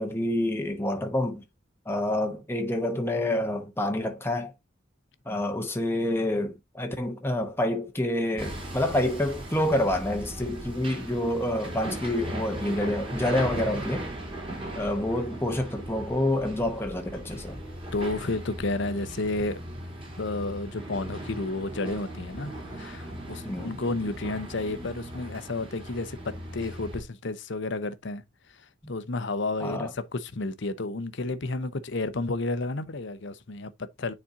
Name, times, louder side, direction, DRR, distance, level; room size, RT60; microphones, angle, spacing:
voice 1, 0.0-1.4 1.9-4.5 5.3-14.1 14.7-17.6 23.4-23.8 29.6-29.9, left 1 dB, 10° left, 0.9 m, -28 dB
Hammer, 8.4-27.0, right 1 dB, 30° right, 2.9 m, -38 dB
voice 2, 17.9-19.6 20.2-28.2 28.9-34.1, left 2 dB, 65° left, 0.8 m, -31 dB
9.7 x 4.4 x 2.7 m
head